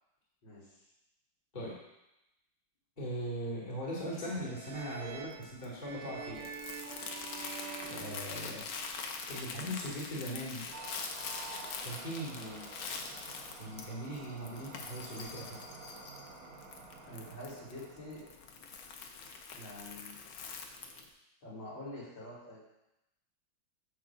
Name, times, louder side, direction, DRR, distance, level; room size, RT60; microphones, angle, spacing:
voice 1, 3.0-6.5 7.8-8.6 9.3-10.7 11.8-12.4 13.6-15.6, equal, 20° left, -7 dB, 2.3 m, -39 dB
sound 1, 4.4-9.0, right 7 dB, 85° right, 1.6 m, -46 dB
Crumpling crinkling, 4.7-21.1, left 5 dB, 85° left, 1.7 m, -44 dB
voice 2, 7.8-8.6 12.3-12.6 17.1-18.2 19.5-20.2 21.4-22.6, left 1 dB, 65° left, -9 dB, 4.2 m, -46 dB
sound 2, 10.7-18.7, right 4 dB, 55° right, 1.1 m, -50 dB
10.0 x 3.6 x 7.3 m, 0.91 s
omnidirectional pair, 2.2 m